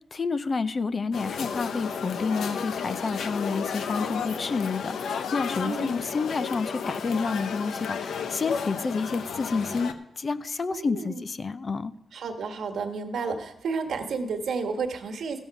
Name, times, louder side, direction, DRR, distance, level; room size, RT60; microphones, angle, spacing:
voice 1, 0.1-11.9, left 4 dB, 30° left, 12 dB, 0.5 m, -29 dB
sound 1, 1.1-9.9, left 6 dB, 85° left, 0.8 m, -33 dB
voice 2, 5.6-6.0 10.7-11.2 12.1-15.4, right 4 dB, 70° right, 6 dB, 1.4 m, -31 dB
15.0 x 7.2 x 5.9 m, 0.98 s
wide cardioid pair, 170°, 0 cm